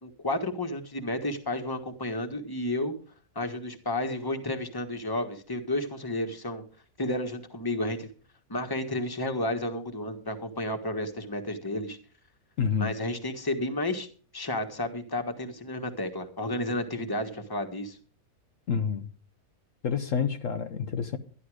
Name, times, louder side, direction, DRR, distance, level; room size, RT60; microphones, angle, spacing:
voice 1, 0.0-2.9 3.3-6.6 7.0-8.1 8.5-12.0 12.8-14.1 14.3-18.0, left 1 dB, 15° left, 1.4 m, -31 dB
voice 2, 12.6-12.9 18.7-19.1 19.8-21.2, left 6 dB, 65° left, 1.3 m, -28 dB
12.5 x 11.5 x 4.9 m
omnidirectional pair, 1.5 m